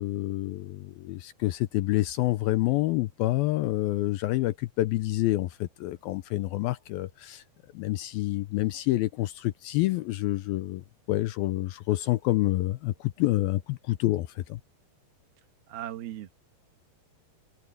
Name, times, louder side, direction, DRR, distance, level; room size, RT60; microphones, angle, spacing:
voice 1, 0.0-7.4 7.7-10.8 11.1-14.6, left 17 dB, 80° left, 2.3 m, -28 dB
voice 2, 15.7-16.3, right 12 dB, 70° right, 3.2 m, -37 dB
omnidirectional pair, 4.7 m